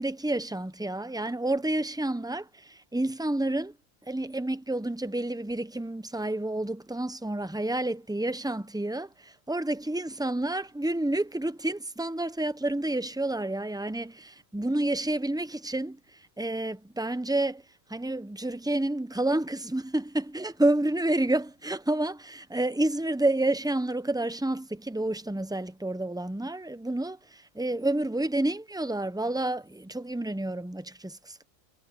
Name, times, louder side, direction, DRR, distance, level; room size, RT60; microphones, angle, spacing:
voice 1, 0.0-3.7 4.1-17.6 17.9-31.4, right 1 dB, 5° right, 0.3 m, -29 dB
omnidirectional pair, 1.3 m